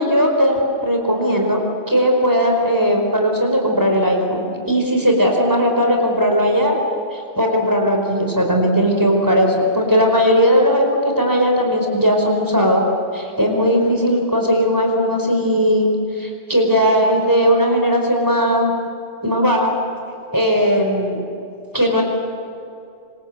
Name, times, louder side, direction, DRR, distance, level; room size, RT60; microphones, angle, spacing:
voice 1, 0.0-1.6 1.9-6.7 7.1-12.8 13.1-15.9 16.2-18.7 19.2-19.7 20.3-21.2 21.7-22.0, equal, 20° right, 1 dB, 5.1 m, -17 dB
26.5 x 26.5 x 8.1 m, 2.5 s
omnidirectional pair, 1.1 m